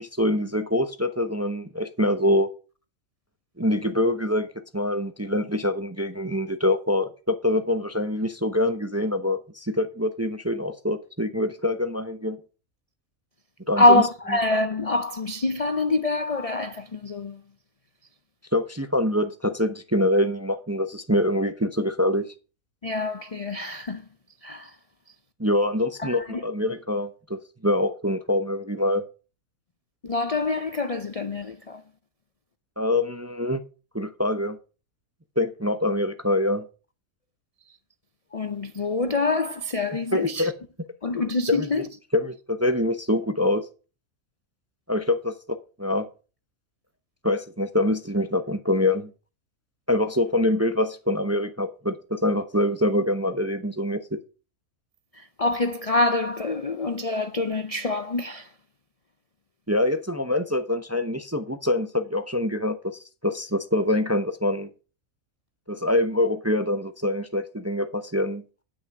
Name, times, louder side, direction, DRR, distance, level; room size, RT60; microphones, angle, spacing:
voice 1, 0.0-2.5 3.6-4.5 4.7-12.4 13.7-14.0 18.5-22.2 25.4-29.0 32.8-33.6 33.9-34.6 35.4-36.6 40.1-40.5 41.5-41.7 42.1-43.6 44.9-46.1 47.2-49.1 49.9-54.0 59.7-62.8 63.2-64.7 65.7-68.6, left 1 dB, 15° right, 0.6 m, -25 dB
voice 2, 13.8-17.4 22.8-24.0 24.4-24.8 26.0-26.5 30.0-31.8 38.3-40.5 41.0-41.9 55.1-58.5, left 2 dB, 40° left, 0.5 m, -25 dB
10.5 x 6.5 x 6.0 m
omnidirectional pair, 1.5 m